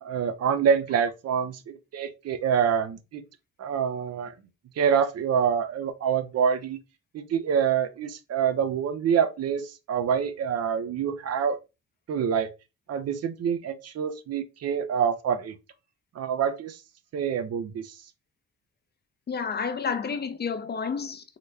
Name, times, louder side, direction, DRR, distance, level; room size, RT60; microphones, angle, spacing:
voice 1, 0.0-3.2 3.6-4.3 4.8-6.8 7.1-11.6 12.1-12.5 12.9-15.5 16.2-16.8 17.1-18.0, right 7 dB, 55° right, 0.6 m, -26 dB
voice 2, 19.3-21.4, left 6 dB, 35° left, 0.5 m, -30 dB
3.9 x 2.2 x 3.2 m
cardioid pair, 90°, 30 cm